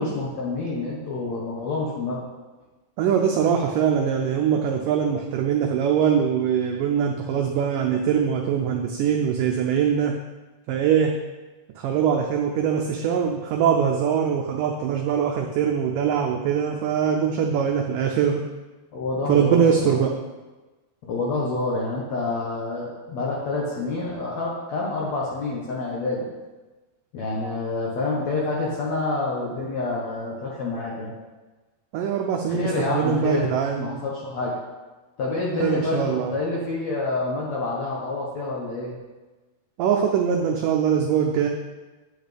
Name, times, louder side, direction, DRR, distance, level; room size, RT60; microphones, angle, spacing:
voice 1, 0.0-2.2 18.9-19.9 21.1-26.3 27.1-31.1 32.5-33.5 33.8-34.6 35.2-39.0, left 2 dB, 65° left, -4 dB, 1.8 m, -27 dB
voice 2, 3.0-10.2 10.7-11.2 11.8-18.4 19.3-20.1 31.9-33.9 35.6-36.3 39.8-41.5, right 7 dB, 90° right, 2 dB, 1.9 m, -22 dB
8.9 x 8.5 x 3.4 m, 1.2 s
omnidirectional pair, 4.6 m